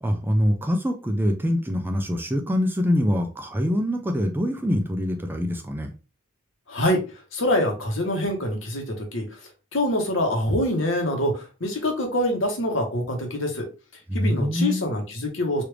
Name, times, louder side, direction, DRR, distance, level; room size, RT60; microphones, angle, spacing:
voice 1, 0.0-5.9 14.1-14.9, equal, 10° right, 5 dB, 0.4 m, -24 dB
voice 2, 6.7-7.0 7.3-9.2 9.7-13.7 14.1-15.6, left 1 dB, 75° left, 3 dB, 1.0 m, -25 dB
3.2 x 2.5 x 3.1 m, 0.33 s
head